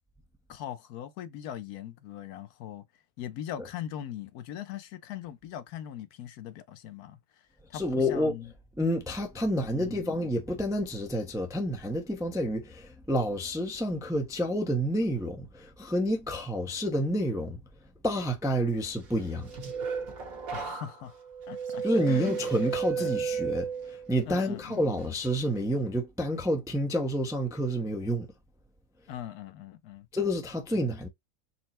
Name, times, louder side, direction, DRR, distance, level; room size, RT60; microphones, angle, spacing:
voice 1, 0.5-2.8 3.2-7.2 7.7-8.5 9.7-10.0 20.5-21.1 21.5-22.3 23.0-23.1 24.3-25.0 29.1-30.1 30.7-30.8, left 11 dB, 85° left, 1.2 m, -40 dB
voice 2, 7.7-8.4 8.8-17.6 18.0-19.5 21.8-28.3 30.1-31.1, equal, 5° right, 0.3 m, -29 dB
sound 1, 19.2-24.2 24.6-25.0, right 6 dB, 70° right, 1.7 m, -34 dB
4.4 x 2.1 x 4.1 m
omnidirectional pair, 1.6 m